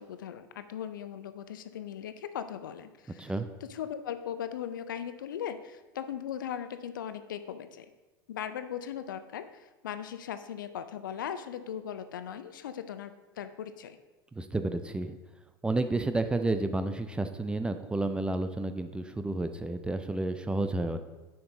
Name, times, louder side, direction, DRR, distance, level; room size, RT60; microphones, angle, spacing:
voice 1, 0.0-3.3 3.6-7.9 8.3-14.0, left 9 dB, 65° left, 11 dB, 0.4 m, -38 dB
voice 2, 14.4-15.2 15.6-21.0, right 2 dB, 10° right, 9 dB, 0.4 m, -31 dB
6.7 x 5.5 x 3.8 m, 1.2 s
figure-of-eight pair, 80°, 12 cm